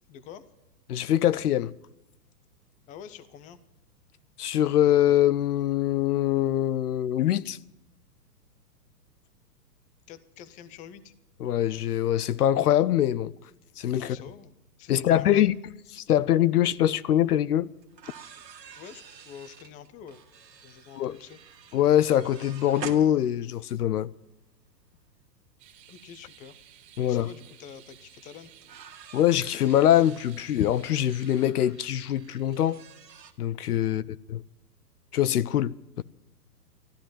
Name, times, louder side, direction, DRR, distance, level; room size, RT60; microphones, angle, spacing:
voice 1, 0.1-0.4 2.9-3.6 10.1-11.1 13.9-14.5 14.8-15.5 18.8-20.2 20.6-21.4 25.9-26.6 27.0-28.5 33.9-34.1, left 8 dB, 15° left, 0.6 m, -46 dB
voice 2, 0.9-1.7 4.4-7.6 11.4-13.3 13.8-14.2 14.9-15.6 15.9-17.7 21.0-21.2 21.7-24.1 27.0-27.3 29.1-32.8 33.4-34.0 34.3-34.4 35.1-36.0, left 11 dB, 65° left, 0.7 m, -23 dB
sound 1, 16.6-16.7 17.8-23.8 25.1-25.2 26.9-27.0 27.4-27.5 28.6-33.3, right 7 dB, 85° right, 1.8 m, -47 dB
sound 2, 25.6-31.5, right 11 dB, 40° right, 2.3 m, -54 dB
13.5 x 13.0 x 7.3 m
hypercardioid pair, 120°, 49 cm